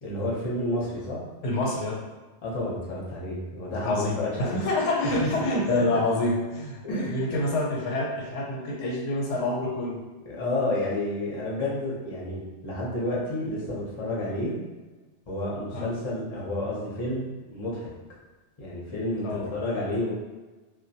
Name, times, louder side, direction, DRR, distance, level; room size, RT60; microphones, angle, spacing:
voice 1, 0.0-1.2 2.4-4.6 5.2-5.7 6.8-7.4 10.3-14.5 15.3-17.9 18.6-20.1, left 1 dB, 35° left, -5 dB, 0.5 m, -30 dB
voice 2, 1.4-2.0 3.8-10.0 15.7-15.9 19.2-19.5, left 2 dB, 85° left, -2 dB, 0.9 m, -27 dB
2.3 x 2.1 x 2.7 m, 1.2 s
omnidirectional pair, 1.2 m